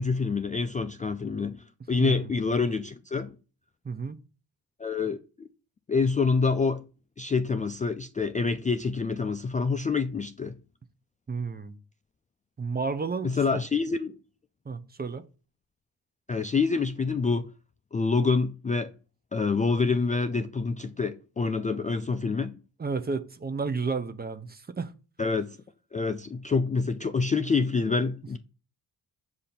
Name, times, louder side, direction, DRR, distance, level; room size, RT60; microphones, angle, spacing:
voice 1, 0.0-3.3 4.8-5.5 5.9-6.9 7.2-10.6 13.2-14.2 16.3-17.5 17.9-18.9 19.3-22.6 25.2-25.6 25.9-28.4, left 4 dB, 20° left, 0.3 m, -27 dB
voice 2, 2.0-2.3 3.8-4.2 11.3-11.8 12.6-13.6 14.7-15.3 22.8-24.9, right 4 dB, 25° right, 0.6 m, -32 dB
6.8 x 2.7 x 5.7 m
cardioid pair, 95°, 39 cm